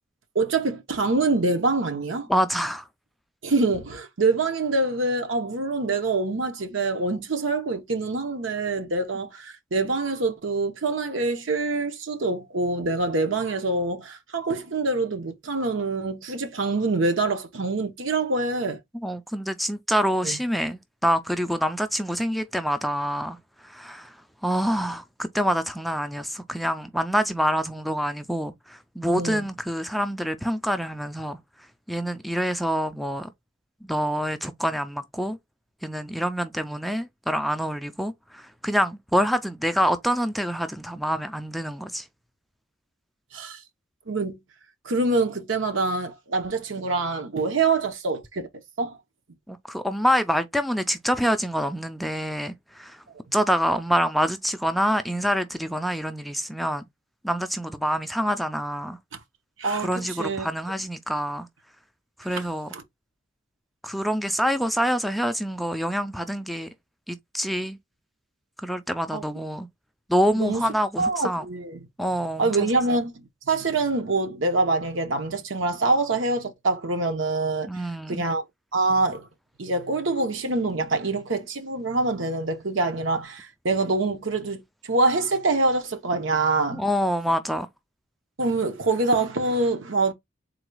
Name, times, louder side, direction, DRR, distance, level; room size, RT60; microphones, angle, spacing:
voice 1, 0.3-2.3 3.4-18.8 20.2-20.3 29.2-29.4 43.3-43.6 44.1-44.4 44.8-48.5 48.8-49.0 59.6-59.9 60.2-60.5 62.3-62.4 62.7-62.8 69.1-69.2 70.4-70.6 71.0-71.8 72.4-73.1 73.5-77.7 78.1-78.4 78.7-79.3 79.6-86.8 88.4-90.1, right 3 dB, 75° right, 0.9 m, -25 dB
voice 2, 2.3-2.9 18.9-33.3 33.8-35.4 35.8-42.1 49.5-53.0 53.3-56.8 57.2-59.0 59.8-61.5 62.2-62.7 63.8-66.7 67.1-67.8 68.6-69.7 70.1-71.5 72.0-72.7 77.7-78.2 86.7-87.7, equal, ahead, 0.3 m, -26 dB
3.9 x 2.3 x 4.5 m
head